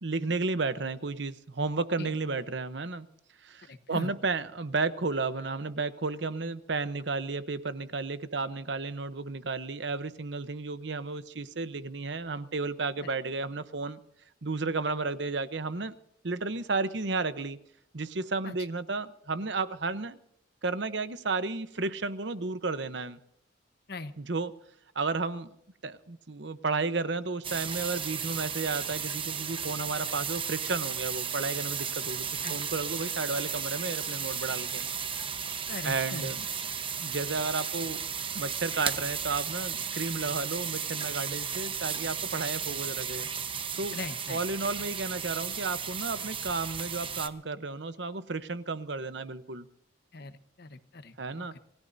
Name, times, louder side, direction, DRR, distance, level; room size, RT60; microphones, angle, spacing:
voice 1, 0.0-3.1 3.4-14.0 14.4-16.0 16.2-17.6 17.9-20.2 20.6-23.2 24.2-24.5 24.9-25.5 25.8-34.9 35.8-36.5 37.0-38.0 38.3-43.3 43.8-44.0 44.3-49.7 51.2-51.5, right 3 dB, 65° right, 0.9 m, -33 dB
voice 2, 3.7-4.1 13.0-13.1 18.4-18.5 23.9-24.1 32.4-32.6 35.7-36.3 43.9-44.4 50.1-51.6, left 2 dB, 55° left, 1.1 m, -40 dB
sound 1, 27.4-47.3, right 7 dB, 30° right, 1.0 m, -34 dB
28.0 x 17.0 x 2.7 m
head